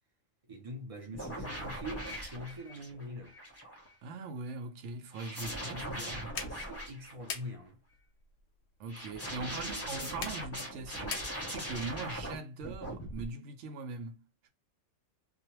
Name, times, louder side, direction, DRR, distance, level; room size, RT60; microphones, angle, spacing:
voice 1, 0.4-3.4 5.4-7.8 9.4-9.9, equal, 35° right, 0.6 m, -44 dB
sound 1, 1.1-3.9 5.1-7.5 8.9-12.4 12.6-13.3, equal, 15° left, 0.5 m, -40 dB
voice 2, 4.0-6.3 8.8-14.5, right 3 dB, 70° right, 0.9 m, -41 dB
sound 2, 6.3-11.8, left 6 dB, 65° left, 0.7 m, -46 dB
2.4 x 2.1 x 2.9 m
omnidirectional pair, 1.3 m